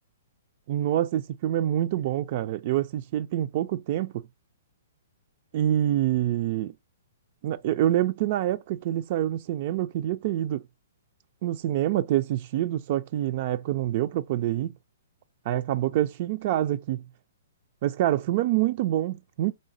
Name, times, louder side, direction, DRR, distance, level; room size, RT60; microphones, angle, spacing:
voice 1, 0.7-4.1 5.5-6.7 7.4-10.6 11.4-14.8 15.5-17.0 17.8-19.5, right 12 dB, 45° right, 0.3 m, -26 dB
5.3 x 3.6 x 2.7 m
hypercardioid pair, 120°, 0 cm